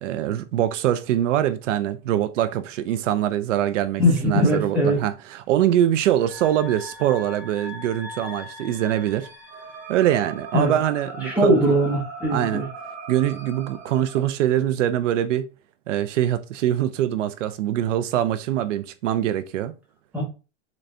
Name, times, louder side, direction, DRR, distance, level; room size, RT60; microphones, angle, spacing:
voice 1, 0.0-9.3 9.9-11.6 12.3-12.6 13.1-15.5 15.9-19.7, right 11 dB, 85° right, 0.6 m, -23 dB
voice 2, 4.0-5.0 10.5-10.7 11.2-12.6 20.1-20.2, equal, 5° right, 1.1 m, -20 dB
sound 1, 6.2-14.3, right 1 dB, 35° right, 1.4 m, -39 dB
4.0 x 2.6 x 3.2 m
supercardioid pair, 165°, 36 cm